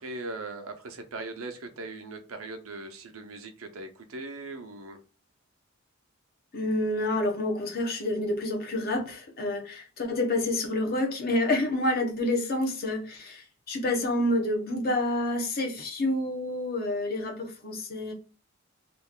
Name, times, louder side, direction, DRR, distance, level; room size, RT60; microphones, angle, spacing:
voice 1, 0.0-5.0, right 2 dB, 80° right, 0.6 m, -39 dB
voice 2, 6.5-18.1, left 1 dB, 45° left, 0.9 m, -28 dB
3.0 x 2.4 x 3.5 m
head